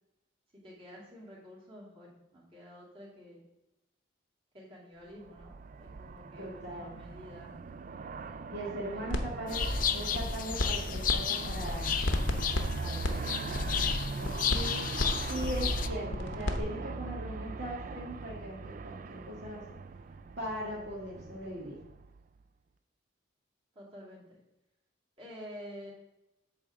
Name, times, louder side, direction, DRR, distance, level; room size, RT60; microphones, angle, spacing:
voice 1, 0.5-3.4 4.5-7.5 8.7-9.6 23.7-24.2 25.2-25.9, equal, 30° right, -5 dB, 2.7 m, -49 dB
Aircraft, 5.2-22.4, right 4 dB, 45° right, 0.4 m, -41 dB
voice 2, 6.4-7.0 8.5-9.7 9.9-11.9 12.8-13.6 14.2-14.9 15.3-19.6 20.4-21.8, equal, 60° right, -4 dB, 1.6 m, -40 dB
sound 1, 9.1-9.2 9.5-11.1 11.4-16.6, left 1 dB, 90° left, 0.9 m, -32 dB
sound 2, 9.5-15.9, left 9 dB, 45° left, 0.4 m, -34 dB
8.6 x 3.6 x 6.5 m, 0.89 s
head